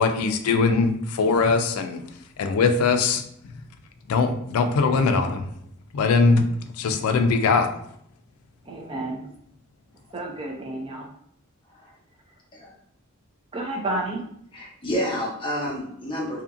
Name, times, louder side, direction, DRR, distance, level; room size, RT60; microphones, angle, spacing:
voice 1, 0.0-2.0 2.4-3.5 4.1-5.5 5.9-6.4 6.8-7.7, left 4 dB, 85° left, 7 dB, 0.3 m, -21 dB
voice 2, 8.7-9.2 10.1-11.1 13.5-14.2, right 2 dB, 25° right, 0 dB, 0.5 m, -30 dB
voice 3, 14.5-16.4, equal, 25° left, -3 dB, 0.7 m, -29 dB
2.8 x 2.5 x 2.5 m, 0.70 s
head